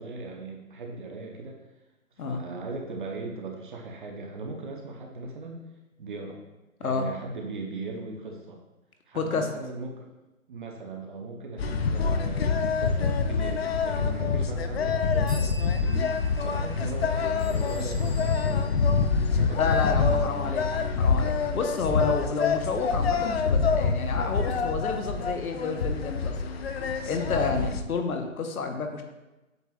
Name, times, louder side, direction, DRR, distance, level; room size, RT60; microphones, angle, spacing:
voice 1, 0.0-1.6 2.2-5.6 6.0-6.4 6.8-8.6 9.1-10.1 10.5-18.8 19.3-20.9 21.4-21.7 27.4-27.6, right 2 dB, 35° right, 1 dB, 0.8 m, -38 dB
voice 2, 9.1-9.5 19.3-20.6 21.0-26.4 27.0-29.0, left 4 dB, 85° left, 5 dB, 1.2 m, -30 dB
sound 1, 11.6-27.8, left 5 dB, 50° left, 0.5 m, -26 dB
sound 2, 15.3-18.8, right 1 dB, 5° right, 0.5 m, -49 dB
Bell / Door, 17.4-19.9, left 1 dB, 15° left, 1.4 m, -51 dB
8.0 x 7.3 x 2.4 m, 1.0 s
hypercardioid pair, 160°, 42 cm